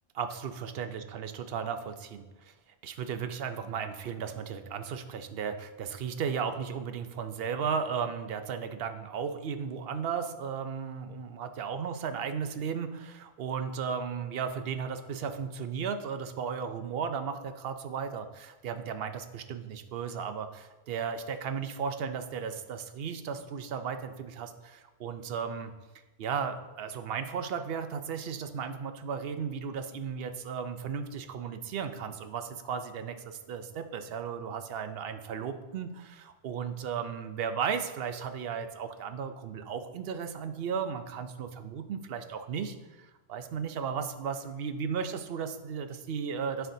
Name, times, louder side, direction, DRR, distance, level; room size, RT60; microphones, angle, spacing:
voice 1, 0.1-2.5 2.8-25.7 26.2-46.7, right 6 dB, 65° right, 8 dB, 0.8 m, -35 dB
11.0 x 4.6 x 2.7 m, 1.1 s
omnidirectional pair, 1.1 m